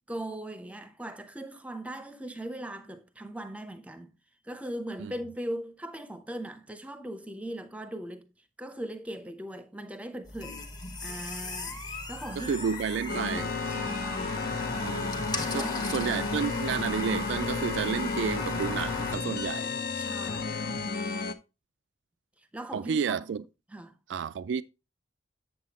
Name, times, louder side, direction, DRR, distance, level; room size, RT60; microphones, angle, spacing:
voice 1, 0.1-4.1 4.4-8.3 8.6-10.6 11.0-12.7 13.7-14.6 15.5-15.9 20.0-20.9 22.5-23.2 23.7-23.9, right 1 dB, 5° right, 0.6 m, -39 dB
sound 1, 10.2-19.2, left 3 dB, 20° left, 0.9 m, -37 dB
voice 2, 12.4-13.5 14.8-19.7 21.1-21.3 22.7-23.4 24.1-24.6, right 6 dB, 70° right, 0.3 m, -31 dB
sound 2, 13.1-21.3, left 4 dB, 50° left, 0.6 m, -33 dB
7.7 x 7.7 x 2.8 m
head